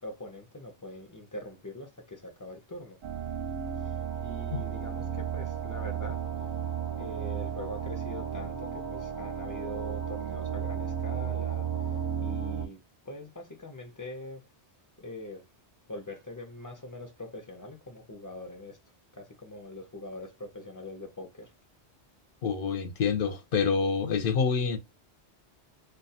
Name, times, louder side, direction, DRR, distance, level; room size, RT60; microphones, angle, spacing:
voice 1, 0.0-3.0 3.8-6.2 7.0-14.4 15.0-15.5 15.9-18.8 19.1-21.5, left 1 dB, 30° left, 0.3 m, -43 dB
sound 1, 3.0-12.7, right 8 dB, 50° right, 0.5 m, -34 dB
voice 2, 22.4-24.8, left 5 dB, 60° left, 0.7 m, -27 dB
2.2 x 2.2 x 2.7 m
omnidirectional pair, 1.2 m